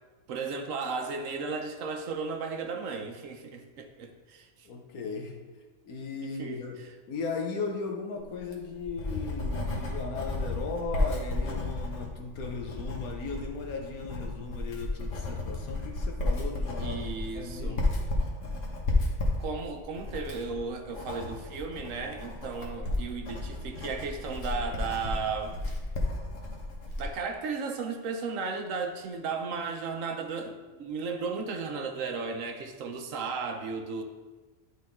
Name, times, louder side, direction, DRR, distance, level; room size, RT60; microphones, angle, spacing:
voice 1, 0.3-4.7 6.4-6.9 16.8-17.8 19.4-25.6 27.0-34.0, right 4 dB, 65° right, 5 dB, 1.0 m, -35 dB
voice 2, 4.6-5.4 5.8-17.0 17.3-17.8, left 4 dB, 80° left, 2 dB, 1.4 m, -37 dB
Writing, 8.4-27.1, left 2 dB, 60° left, 1.4 m, -33 dB
10.5 x 4.0 x 3.5 m, 1.3 s
omnidirectional pair, 1.5 m